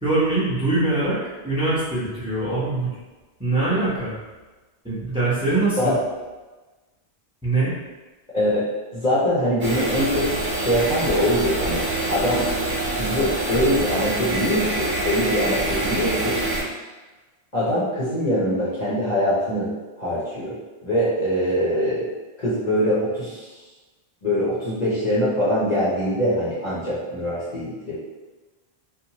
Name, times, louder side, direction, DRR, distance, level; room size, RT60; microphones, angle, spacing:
voice 1, 0.0-2.9 3.4-4.1 4.8-5.9 7.4-7.7, right 2 dB, 5° right, -9 dB, 0.7 m, -23 dB
voice 2, 8.9-10.3 10.5-11.8 12.1-12.4 12.9-16.4 17.5-19.7 20.0-20.5 20.8-22.1 22.4-23.4 24.2-28.0, equal, 45° left, -9 dB, 0.8 m, -23 dB
sound 1, 9.6-16.6, right 2 dB, 70° right, 1.0 m, -25 dB
2.8 x 2.2 x 2.9 m, 1.2 s
omnidirectional pair, 1.0 m